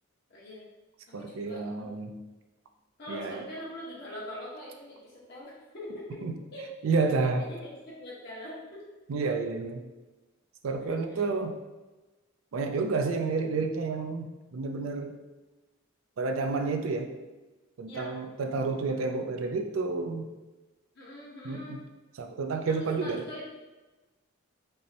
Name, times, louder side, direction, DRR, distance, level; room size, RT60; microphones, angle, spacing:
voice 1, 0.3-0.7 1.2-1.9 3.0-6.2 6.5-6.6 7.4-8.8 10.8-11.2 17.9-18.2 20.9-21.8 22.8-23.4, left 1 dB, 50° left, -6 dB, 1.3 m, -43 dB
voice 2, 1.1-2.1 3.1-3.4 6.2-6.3 6.8-7.5 9.1-9.8 10.6-11.5 12.5-15.1 16.2-17.1 17.8-20.2 21.4-21.8 22.2-23.2, right 4 dB, 75° right, 5 dB, 0.4 m, -30 dB
5.3 x 2.1 x 2.8 m, 1.2 s
head